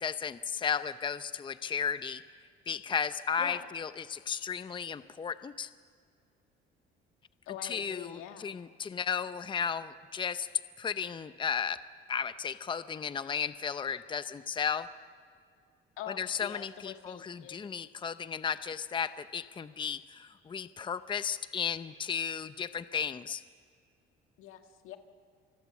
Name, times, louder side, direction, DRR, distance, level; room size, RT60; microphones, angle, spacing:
voice 1, 0.0-2.2 2.7-5.7 7.6-10.5 10.8-11.8 12.1-14.9 16.1-23.4, left 7 dB, 25° left, 13 dB, 0.6 m, -34 dB
voice 2, 3.4-3.7 7.4-8.5 16.0-17.6 24.4-25.0, left 11 dB, 85° left, 5 dB, 2.0 m, -44 dB
28.0 x 21.0 x 7.2 m, 2.2 s
cardioid pair, 115°, 20 cm